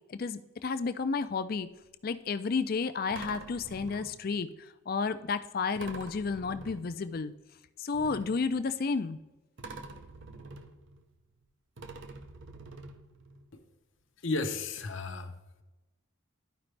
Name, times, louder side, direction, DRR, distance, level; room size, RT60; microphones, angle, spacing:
voice 1, 0.1-1.7 2.0-7.3 7.8-9.2, left 4 dB, 45° left, 12 dB, 0.4 m, -32 dB
sound 1, 1.6-1.9 3.1-4.5 5.7-7.3 7.9-9.2 9.6-11.4 11.8-13.5 14.4-14.5 14.8-14.9, right 2 dB, 65° right, 0.7 m, -47 dB
voice 2, 14.2-15.4, left 3 dB, 70° left, 6 dB, 0.8 m, -33 dB
12.0 x 5.0 x 3.2 m, 1.1 s
head